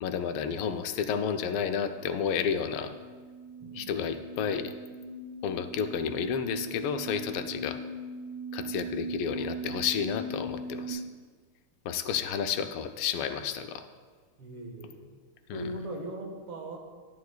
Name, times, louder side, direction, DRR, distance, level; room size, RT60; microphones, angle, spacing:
voice 1, 0.0-2.9 3.7-4.7 5.4-7.8 8.5-11.0 11.8-13.9 15.5-15.7, left 7 dB, 85° left, 8 dB, 1.5 m, -31 dB
sound 1, 2.8-10.9, right 2 dB, 30° right, 1.6 m, -40 dB
voice 2, 3.6-3.9 14.4-15.1 15.5-16.8, right 1 dB, 85° right, 1 dB, 2.2 m, -39 dB
11.5 x 10.0 x 2.2 m, 1.5 s
omnidirectional pair, 2.4 m